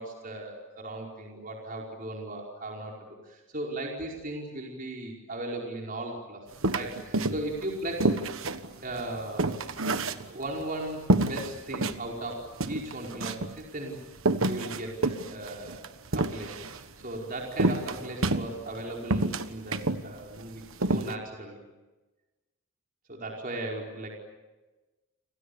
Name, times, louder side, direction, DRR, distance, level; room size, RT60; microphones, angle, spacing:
voice 1, 0.0-2.9 3.2-6.4 6.7-8.1 8.8-9.6 10.3-14.0 14.4-15.8 16.1-21.6 23.1-24.1, right 1 dB, 40° right, -1 dB, 5.0 m, -37 dB
sound 1, 6.6-7.6 8.0-10.6 11.1-12.0 12.3-12.4 12.6-13.6 14.2-16.8 17.6-18.8 19.1-20.0 20.4-20.5 20.8-21.1, right 2 dB, 65° right, 1.4 m, -28 dB
30.0 x 27.5 x 7.1 m, 1.1 s
head